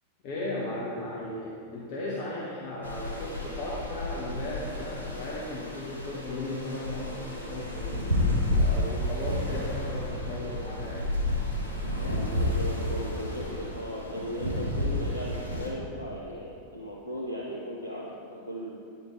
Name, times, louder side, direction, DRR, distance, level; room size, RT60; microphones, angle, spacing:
voice 1, 0.2-8.1 8.6-11.1, left 1 dB, 45° left, -6 dB, 1.4 m, -36 dB
sound 1, 2.8-15.7, left 1 dB, 85° right, 1.4 m, -31 dB
voice 2, 12.0-18.8, equal, 80° left, -5 dB, 1.0 m, -37 dB
10.0 x 5.7 x 4.6 m, 2.3 s
figure-of-eight pair, 90°, 0 cm